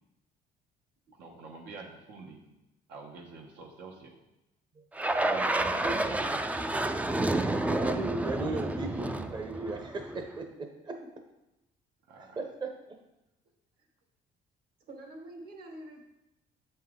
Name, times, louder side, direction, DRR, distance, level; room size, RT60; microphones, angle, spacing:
voice 1, 1.2-2.4 2.9-4.2 5.0-6.0 6.3-6.4 12.1-12.4, right 3 dB, 85° right, 0 dB, 1.1 m, -47 dB
sound 1, 5.0-10.3, right 2 dB, 10° right, 0.3 m, -30 dB
voice 2, 5.8-6.2 7.6-11.0 12.2-12.7, right 3 dB, 25° right, 4 dB, 0.7 m, -36 dB
voice 3, 14.9-16.0, right 1 dB, 70° right, 2 dB, 1.6 m, -46 dB
7.3 x 5.6 x 3.7 m, 0.93 s
cardioid pair, 110°, 17 cm